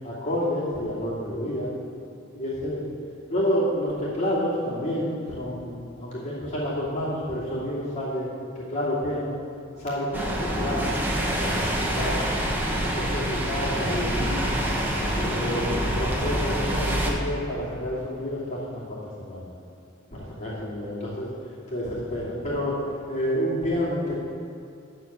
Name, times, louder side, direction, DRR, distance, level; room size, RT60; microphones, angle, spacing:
voice 1, 0.0-1.7 2.3-2.9 3.3-8.3 8.5-9.4 9.8-12.1 12.9-14.6 15.1-19.5 20.1-21.3 21.7-22.8 23.1-24.2, equal, 35° left, -8 dB, 2.8 m, -29 dB
sound 1, 10.1-17.1, equal, 10° right, 1.3 m, -26 dB
12.5 x 4.5 x 8.3 m, 2.6 s
head